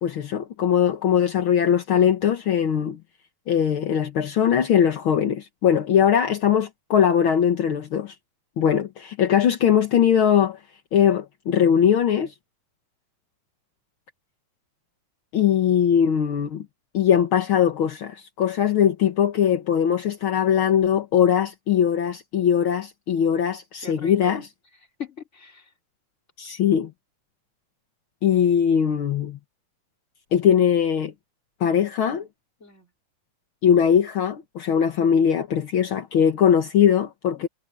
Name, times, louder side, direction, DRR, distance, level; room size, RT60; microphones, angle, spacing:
voice 1, 0.0-3.0 3.5-8.1 8.6-10.6 10.9-12.3 15.3-16.6 16.9-24.5 26.4-26.9 28.2-29.4 30.3-31.1 31.6-32.3 33.6-37.5, left 8 dB, 55° left, 1.5 m, -20 dB
voice 2, 23.8-24.4 25.0-25.7 32.6-32.9 37.4-37.5, left 5 dB, 20° left, 3.6 m, -39 dB
omnidirectional pair, 3.9 m